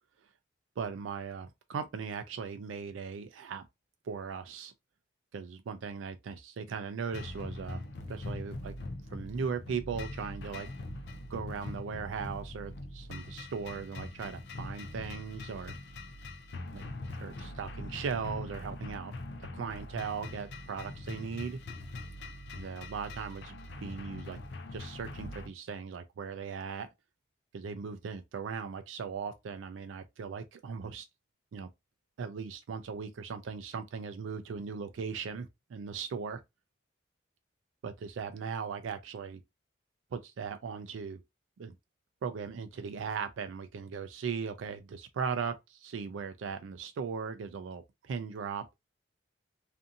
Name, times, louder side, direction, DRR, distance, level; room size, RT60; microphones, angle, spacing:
voice 1, 0.8-3.6 4.0-4.7 5.3-7.8 8.1-8.7 9.1-10.7 11.3-15.7 16.7-16.8 17.1-19.1 19.5-21.6 22.6-24.4 24.7-26.9 27.5-31.1 31.5-31.7 32.2-36.4 37.8-39.4 40.1-41.2 41.6-41.7 42.2-48.6, right 6 dB, 85° right, 0.3 m, -38 dB
sound 1, 7.1-25.5, left 2 dB, 60° left, 0.4 m, -42 dB
2.5 x 2.5 x 2.5 m
head